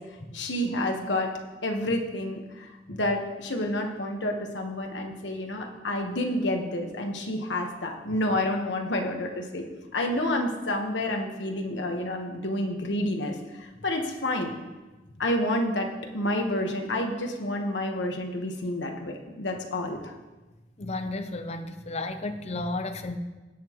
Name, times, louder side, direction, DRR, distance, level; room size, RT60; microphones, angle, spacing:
voice 1, 0.3-1.3 1.6-9.6 9.9-14.5 15.2-20.1, left 1 dB, 85° left, 3 dB, 1.3 m, -29 dB
voice 2, 20.8-23.2, left 2 dB, 40° left, 8 dB, 0.6 m, -33 dB
17.5 x 6.0 x 3.0 m, 1.2 s
head